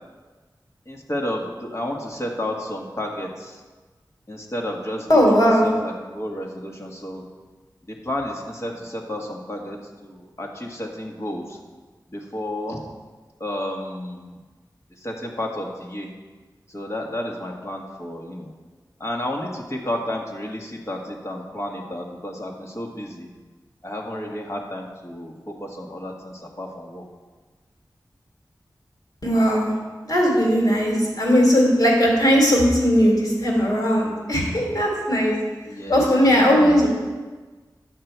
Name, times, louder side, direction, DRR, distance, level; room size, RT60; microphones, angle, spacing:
voice 1, 0.8-3.6 4.3-7.2 7.8-11.6 12.1-12.8 13.4-14.4 15.0-16.1 16.7-18.5 19.0-23.3 23.8-27.0 35.7-36.9, left 1 dB, 40° left, 0 dB, 1.7 m, -31 dB
voice 2, 5.1-5.7 29.2-29.8 30.1-35.3 35.9-36.9, equal, 60° left, -2 dB, 3.1 m, -18 dB
9.7 x 6.7 x 4.6 m, 1.3 s
wide cardioid pair, 50°, 8 cm